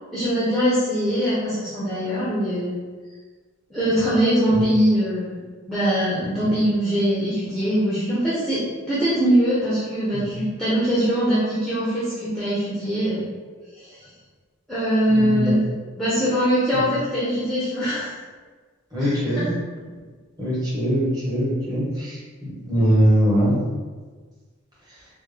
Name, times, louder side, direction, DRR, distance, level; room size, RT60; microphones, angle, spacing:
voice 1, 0.1-2.8 3.7-5.4 5.7-13.2 13.7-14.1 14.7-15.6 16.0-18.2 19.0-19.5, equal, ahead, -11 dB, 0.6 m, -22 dB
voice 2, 6.2-6.5 10.1-10.3 15.1-15.5 18.9-19.6 20.4-23.6, equal, 20° right, -8 dB, 1.0 m, -22 dB
3.5 x 2.1 x 3.2 m, 1.4 s
head